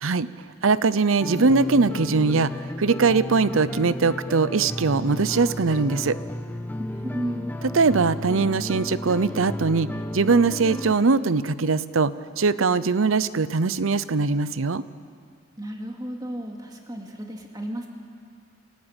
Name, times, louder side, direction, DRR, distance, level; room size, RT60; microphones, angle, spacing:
voice 1, 0.6-2.5 2.8-6.2 7.7-9.9 10.1-14.8, right 4 dB, 75° right, 16 dB, 0.7 m, -21 dB
sound 1, 1.2-11.0, left 1 dB, 10° left, 0.8 m, -33 dB
voice 2, 7.0-7.5 15.6-17.9, equal, 20° right, 1 dB, 2.5 m, -33 dB
29.5 x 15.0 x 9.0 m, 2.2 s
head